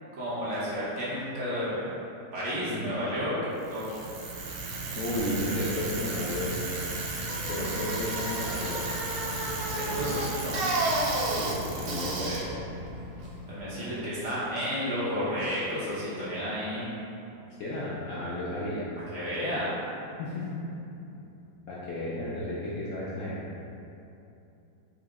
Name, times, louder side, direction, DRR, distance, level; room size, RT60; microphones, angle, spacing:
voice 1, 0.1-1.9 2.3-3.4 3.7-4.0 7.5-7.8 9.7-10.6 13.5-16.9 19.1-19.7, equal, 50° right, -10 dB, 1.2 m, -32 dB
voice 2, 2.7-3.0 5.0-6.6 7.5-8.8 11.3-12.4 17.6-18.9 20.2-20.6 21.7-23.4, left 1 dB, 70° left, -7 dB, 0.8 m, -33 dB
Bicycle, 3.6-13.7, right 2 dB, 75° right, 1.1 m, -32 dB
4.8 x 2.1 x 3.5 m, 2.8 s
omnidirectional pair, 1.8 m